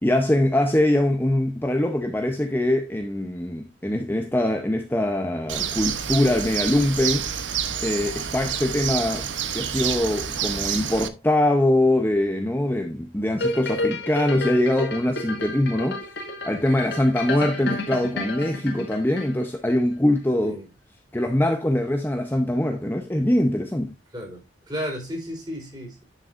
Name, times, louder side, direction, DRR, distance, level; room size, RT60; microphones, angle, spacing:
voice 1, 0.0-7.3 7.8-16.0 16.4-20.6 21.1-23.9, left 1 dB, 10° left, 0.7 m, -23 dB
Bird, 5.5-11.1, right 8 dB, 80° right, 0.9 m, -28 dB
sound 1, 13.4-19.7 20.2-20.3, left 2 dB, 65° left, 2.0 m, -31 dB
voice 2, 24.7-26.0, equal, 25° right, 4.1 m, -33 dB
10.5 x 6.6 x 2.6 m
head